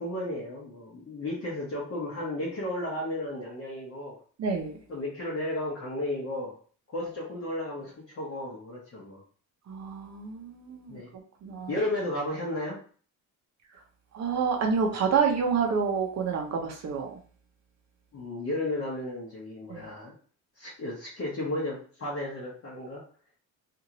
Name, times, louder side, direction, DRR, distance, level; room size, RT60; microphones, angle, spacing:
voice 1, 0.0-4.2 4.9-6.5 6.9-9.2 10.9-11.1 11.7-12.8 18.1-20.2 20.6-23.0, left 1 dB, 35° left, -6 dB, 1.0 m, -33 dB
voice 2, 4.4-4.8 9.7-11.0 11.4-11.7 14.1-17.1 19.7-19.9, right 6 dB, 45° right, 2 dB, 0.7 m, -28 dB
2.8 x 2.5 x 2.8 m, 0.42 s
cardioid pair, 145°, 37 cm